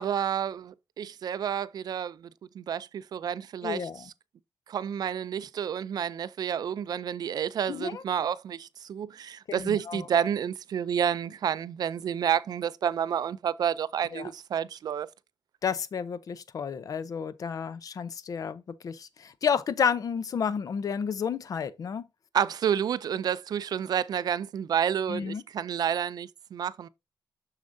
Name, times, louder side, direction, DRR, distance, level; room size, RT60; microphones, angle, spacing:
voice 1, 0.0-2.3 2.5-3.9 4.7-15.1 22.3-26.9, right 8 dB, 60° right, 0.4 m, -30 dB
voice 2, 3.6-4.1 7.7-8.0 9.5-10.1 14.1-14.3 15.6-22.0 25.1-25.4, left 7 dB, 55° left, 0.6 m, -31 dB
6.9 x 6.5 x 2.6 m
wide cardioid pair, 165°, 7 cm